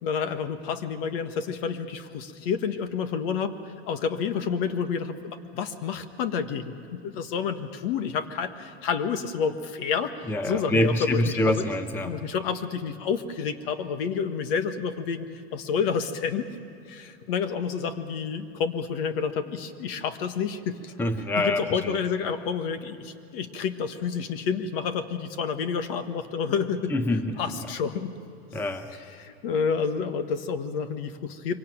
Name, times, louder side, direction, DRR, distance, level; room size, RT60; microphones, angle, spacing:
voice 1, 0.0-11.7 12.0-16.5 16.9-20.9 21.4-26.9 27.4-28.1 29.2-31.6, left 6 dB, 60° left, 9 dB, 1.6 m, -29 dB
voice 2, 10.3-12.1 21.0-21.9 26.9-27.4 28.5-28.9, left 1 dB, 5° left, 8 dB, 0.8 m, -25 dB
24.0 x 17.5 x 9.1 m, 2.7 s
supercardioid pair, 140°, 33 cm